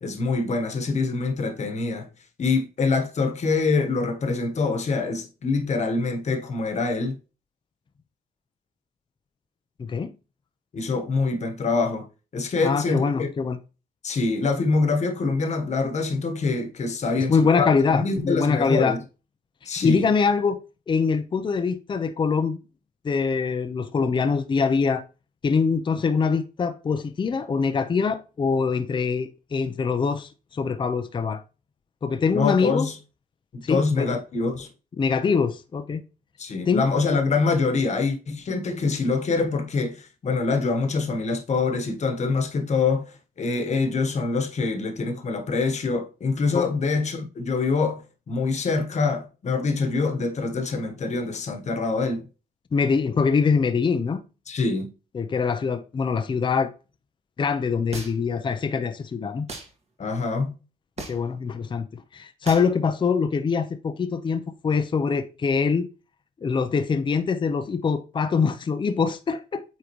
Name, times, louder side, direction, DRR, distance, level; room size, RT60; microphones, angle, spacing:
voice 1, 0.0-2.1 2.4-7.2 10.7-12.1 12.3-13.3 14.0-19.0 19.6-20.0 32.3-33.0 33.5-34.7 36.4-52.3 54.5-54.9 60.0-60.5, left 4 dB, 45° left, 1.3 m, -25 dB
voice 2, 9.8-10.1 12.6-13.6 17.2-18.9 19.7-20.6 20.9-22.6 23.0-25.0 25.4-31.4 32.0-32.9 33.6-34.1 35.0-36.0 36.7-36.9 46.5-46.7 52.7-54.2 55.1-56.7 57.4-59.5 61.1-65.9 66.4-69.6, left 5 dB, 30° left, 0.6 m, -24 dB
sound 1, 57.9-58.4 59.5-59.7 61.0-61.3 62.5-62.7, right 3 dB, 40° right, 1.6 m, -36 dB
8.4 x 3.8 x 3.1 m
cardioid pair, 110°, 16 cm